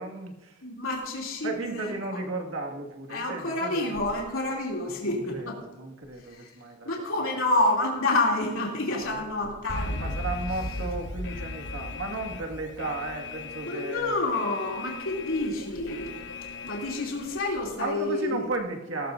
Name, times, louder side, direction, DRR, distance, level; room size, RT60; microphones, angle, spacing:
voice 1, 0.0-0.6 1.4-3.9 5.0-6.9 8.9-9.2 10.0-14.2 17.8-19.1, right 2 dB, 70° right, 2 dB, 2.0 m, -34 dB
voice 2, 0.6-2.2 3.1-5.6 6.3-6.5 6.8-10.0 13.6-16.2 16.6-18.4, left 2 dB, 85° left, -2 dB, 2.9 m, -28 dB
Alarm, 9.7-17.4, left 2 dB, 65° left, 1.1 m, -37 dB
18.0 x 14.0 x 2.6 m, 1.1 s
head